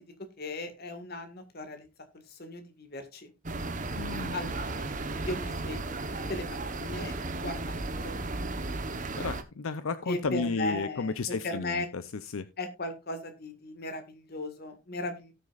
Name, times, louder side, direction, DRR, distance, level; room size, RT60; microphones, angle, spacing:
voice 1, 0.4-1.9 2.3-3.3 4.3-4.9 5.2-6.0 6.3-7.1 7.4-8.2 10.1-11.9 12.6-15.3, left 2 dB, 45° left, 7 dB, 1.8 m, -37 dB
sound 1, 3.4-9.4, right 2 dB, 35° right, 1.0 m, -34 dB
voice 2, 4.0-4.4 9.1-12.5, left 4 dB, 75° left, 12 dB, 0.6 m, -33 dB
17.5 x 6.4 x 2.4 m, 0.25 s
head